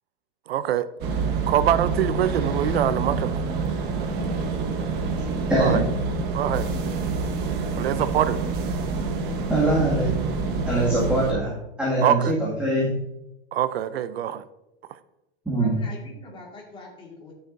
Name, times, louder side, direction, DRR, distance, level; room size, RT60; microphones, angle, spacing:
voice 1, 0.5-0.9 1.5-3.3 5.6-5.8 6.3-6.7 7.8-8.4 12.0-12.3 13.5-14.4, right 11 dB, 90° right, 15 dB, 0.6 m, -24 dB
sound 1, 1.0-11.3, right 4 dB, 35° right, 1.2 m, -27 dB
voice 2, 5.5-5.8 9.5-10.1 10.7-11.5 11.8-12.9 15.5-15.8, right 1 dB, 5° right, -8 dB, 2.1 m, -22 dB
voice 3, 15.5-17.3, left 3 dB, 15° left, -1 dB, 2.0 m, -43 dB
11.5 x 6.6 x 2.7 m, 0.89 s
supercardioid pair, 145°, 30 cm